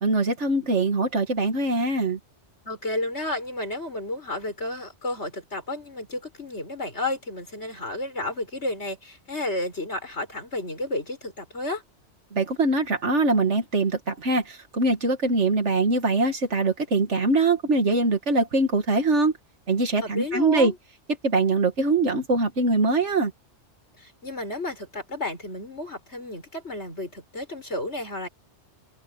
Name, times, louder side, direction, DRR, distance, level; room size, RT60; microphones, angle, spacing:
voice 1, 0.0-2.2 12.3-19.3 19.7-20.7 21.2-23.3, right 3 dB, 80° right, 2.2 m, -23 dB
voice 2, 2.6-11.8 20.0-20.7 24.0-28.3, left 1 dB, 70° left, 6.3 m, -32 dB
omnidirectional pair, 1.2 m